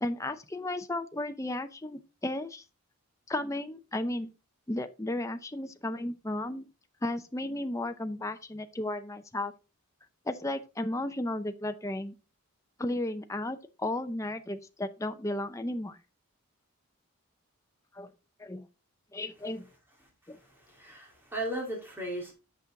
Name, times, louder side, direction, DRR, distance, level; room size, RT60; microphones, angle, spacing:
voice 1, 0.0-2.6 3.3-4.3 4.7-6.7 7.0-9.5 10.3-12.1 12.8-16.0 17.9-18.1 18.4-18.6 19.1-19.6 20.3-20.4, left 1 dB, 15° left, 0.6 m, -34 dB
voice 2, 20.0-22.3, right 1 dB, 10° right, 2.4 m, -37 dB
8.3 x 6.1 x 3.8 m
head